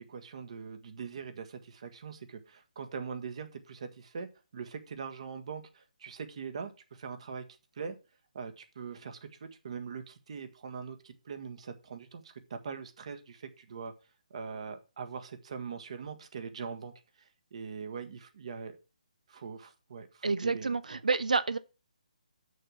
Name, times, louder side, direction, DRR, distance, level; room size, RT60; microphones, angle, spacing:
voice 1, 0.0-7.5 7.7-8.0 8.3-13.9 14.3-18.8 19.3-21.0, right 5 dB, 55° right, 1.5 m, -42 dB
voice 2, 20.2-21.6, right 4 dB, 80° right, 0.7 m, -29 dB
6.5 x 6.1 x 7.4 m
figure-of-eight pair, 150°, 4 cm